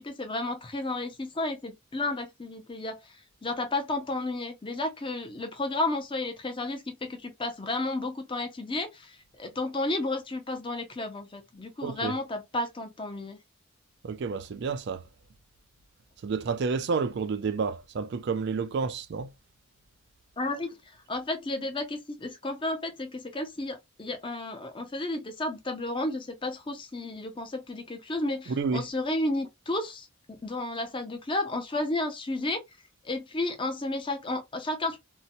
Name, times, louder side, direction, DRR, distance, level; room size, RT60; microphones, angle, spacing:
voice 1, 0.0-3.0 3.4-13.4 20.4-20.8 21.1-32.6 33.0-35.0, left 2 dB, 25° left, 0.5 m, -32 dB
voice 2, 11.8-12.2 14.0-15.0 16.2-19.3 28.5-28.8, right 5 dB, 50° right, 0.3 m, -30 dB
2.7 x 2.1 x 2.5 m
head